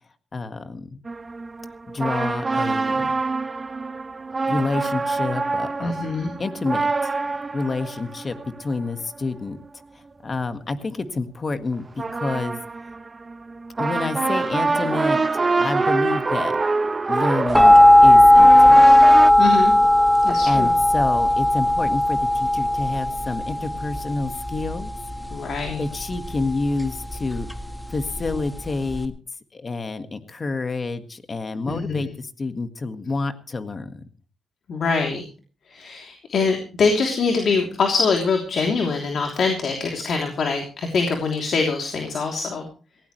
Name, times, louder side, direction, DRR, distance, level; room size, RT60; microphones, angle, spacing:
voice 1, 0.3-1.0 1.9-3.1 4.4-5.9 6.4-7.1 7.5-9.6 10.2-12.6 13.8-15.2 15.6-16.6 17.1-18.9 20.4-24.9 25.8-27.5 27.9-29.1 29.5-34.0, left 3 dB, 35° left, 9 dB, 1.7 m, -28 dB
sound 1, 1.1-9.7 11.7-19.3, right 3 dB, 30° right, 0.9 m, -26 dB
voice 2, 5.8-6.3 19.4-19.7 20.2-20.7 25.3-25.8 31.7-32.1 34.7-35.2 35.7-42.6, left 4 dB, 60° left, 2 dB, 3.2 m, -24 dB
sound 2, 17.5-29.1, left 1 dB, 5° left, 1.6 m, -16 dB
18.5 x 17.0 x 3.2 m, 0.37 s
cardioid pair, 95°, 0 cm